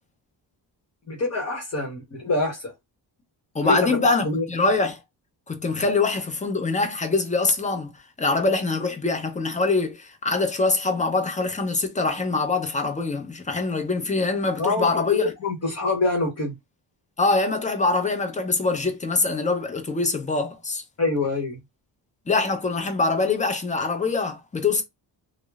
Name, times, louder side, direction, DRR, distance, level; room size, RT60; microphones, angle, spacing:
voice 1, 1.1-2.7 3.6-4.5 14.6-16.6 21.0-21.6, left 2 dB, 35° left, 1.0 m, -25 dB
voice 2, 3.5-5.0 5.5-7.9 8.2-15.3 17.2-20.8 22.3-24.8, left 3 dB, 15° left, 0.5 m, -24 dB
2.9 x 2.1 x 2.3 m
cardioid pair, 100°, 45 cm